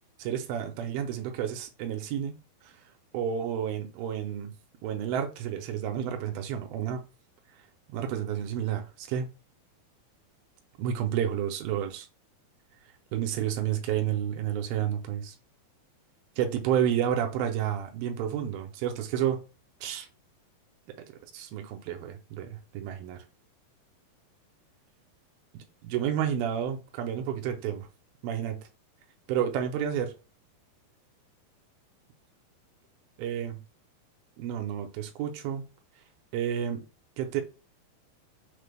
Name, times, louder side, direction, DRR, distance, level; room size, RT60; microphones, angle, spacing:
voice 1, 0.2-2.4 3.1-4.5 4.8-7.0 7.9-9.3 10.8-12.1 13.1-15.3 16.4-19.4 19.8-20.1 21.3-23.2 25.5-27.9 28.2-28.6 29.3-30.1 33.2-33.6 34.4-35.6 36.3-36.8 37.2-37.4, right 9 dB, 85° right, 2.4 m, -30 dB
5.8 x 2.0 x 3.2 m
omnidirectional pair, 4.3 m